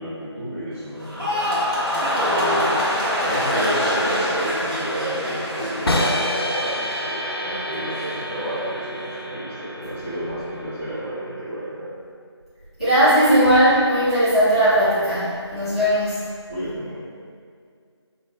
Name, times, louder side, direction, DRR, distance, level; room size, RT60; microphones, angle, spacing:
voice 1, 0.0-1.7 2.2-2.8 3.2-12.0 16.5-17.0, equal, 25° right, -16 dB, 0.6 m, -31 dB
sound 1, 1.0-7.3 7.6-8.1, equal, 55° right, 1.2 m, -24 dB
sound 2, 5.9-11.8, equal, 55° left, 0.5 m, -29 dB
voice 2, 12.8-16.2, equal, 10° left, -16 dB, 0.9 m, -18 dB
5.1 x 2.3 x 2.2 m, 2.2 s
figure-of-eight pair, 180°, 15 cm